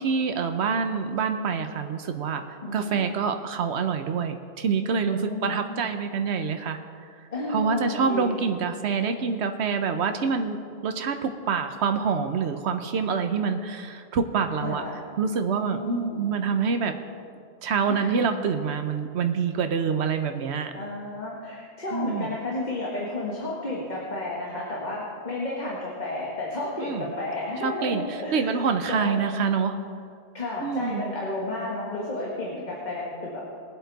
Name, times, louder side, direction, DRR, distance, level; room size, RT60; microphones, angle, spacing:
voice 1, 0.0-6.8 7.5-14.8 15.2-16.9 17.6-20.7 21.9-22.3 26.8-27.0 27.6-28.0 28.3-29.8 30.6-31.0, right 5 dB, 85° right, 7 dB, 1.1 m, -26 dB
voice 2, 2.6-3.0 5.0-5.9 7.3-8.5 14.6-15.0 15.6-16.2 17.9-18.3 20.7-29.3 30.3-33.4, left 2 dB, 40° left, -4 dB, 1.8 m, -32 dB
21.0 x 8.0 x 4.1 m, 2.2 s
omnidirectional pair, 1.1 m